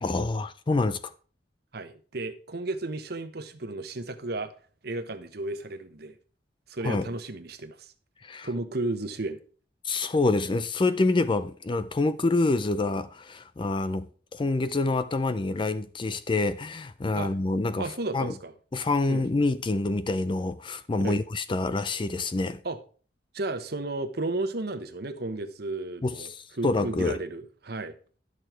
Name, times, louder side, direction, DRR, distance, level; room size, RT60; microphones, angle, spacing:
voice 1, 0.0-1.0 6.8-7.1 8.2-8.5 9.8-14.1 14.3-17.9 18.1-18.3 18.7-22.6 26.0-27.2, left 2 dB, 25° left, 0.4 m, -27 dB
voice 2, 1.7-4.5 4.8-6.2 6.7-7.9 8.4-9.4 17.1-17.4 17.8-18.5 19.1-19.3 21.0-21.2 22.6-22.8 23.3-26.3 26.6-27.9, right 2 dB, 60° right, 1.1 m, -33 dB
11.0 x 6.6 x 4.4 m
head